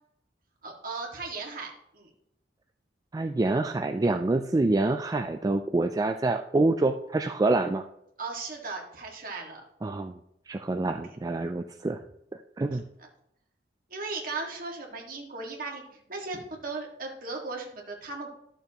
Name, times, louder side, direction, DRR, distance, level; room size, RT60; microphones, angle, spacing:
voice 1, 0.6-2.1 8.2-9.6 12.7-12.8 13.9-18.3, right 3 dB, 50° right, 0 dB, 1.9 m, -37 dB
voice 2, 3.1-7.9 9.8-10.2 10.5-12.0 12.6-12.9, right 2 dB, 20° right, 6 dB, 0.3 m, -26 dB
12.5 x 6.8 x 2.9 m, 0.76 s
head